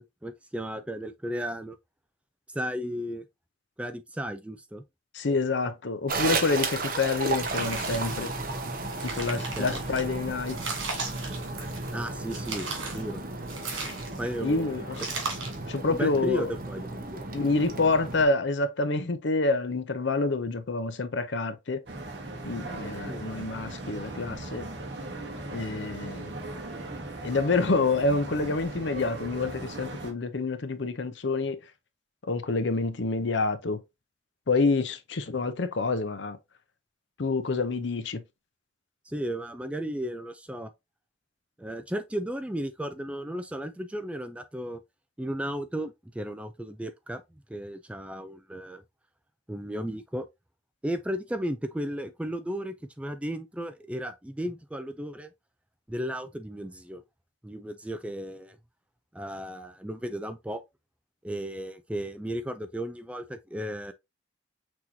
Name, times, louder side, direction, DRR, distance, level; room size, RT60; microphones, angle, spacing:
voice 1, 0.0-1.8 2.5-3.3 3.8-4.8 9.6-9.8 11.9-12.7 12.9-13.2 14.2-14.9 15.9-17.3 23.1-23.2 39.1-40.7 41.6-44.8 45.2-48.8 49.5-50.3 50.8-55.3 55.9-57.0 57.4-58.6 59.1-60.6 61.2-63.9, equal, 5° right, 0.3 m, -34 dB
voice 2, 5.1-8.3 9.0-10.6 14.4-15.0 15.7-16.5 17.3-21.8 22.4-24.7 25.5-26.3 27.2-31.6 32.2-33.8 34.5-36.4 37.2-38.2, left 3 dB, 65° left, 0.6 m, -27 dB
sound 1, 6.1-18.2, right 3 dB, 45° right, 0.9 m, -34 dB
sound 2, 7.3-8.3 8.8-10.0 10.5-11.9 12.3-13.0 13.5-14.4 14.9-15.6, right 4 dB, 80° right, 2.7 m, -36 dB
sound 3, 21.9-30.1, right 2 dB, 60° right, 1.5 m, -38 dB
6.0 x 3.0 x 2.7 m
head